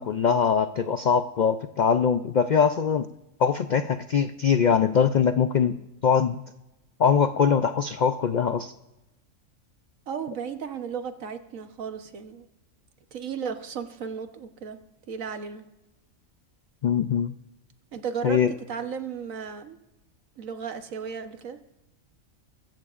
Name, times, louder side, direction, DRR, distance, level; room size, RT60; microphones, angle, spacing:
voice 1, 0.0-3.1 3.4-6.4 7.0-8.7 16.8-17.3 18.2-18.5, left 6 dB, 70° left, 0.4 m, -22 dB
voice 2, 10.1-12.5 13.1-14.8 15.1-15.6 17.9-18.4 18.7-19.8 20.4-21.6, right 6 dB, 80° right, 1.4 m, -34 dB
24.5 x 14.0 x 2.5 m
omnidirectional pair, 1.4 m